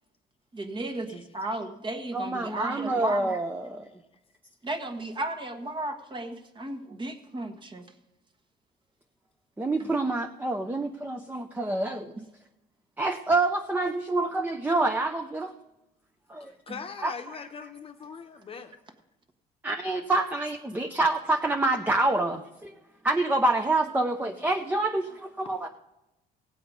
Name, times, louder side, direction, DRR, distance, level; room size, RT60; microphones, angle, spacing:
voice 1, 0.5-3.3 4.6-7.9 9.8-9.9 16.7-16.8, right 2 dB, 30° right, 7 dB, 1.3 m, -34 dB
voice 2, 2.1-3.8 9.6-12.1 13.0-15.5 16.3-16.5 17.0-17.1 19.6-22.7 23.0-25.7, right 2 dB, 10° right, 5 dB, 0.7 m, -27 dB
voice 3, 16.4-18.7, left 6 dB, 35° left, 6 dB, 0.9 m, -41 dB
17.0 x 7.7 x 5.3 m, 0.95 s
cardioid pair, 110°, 17 cm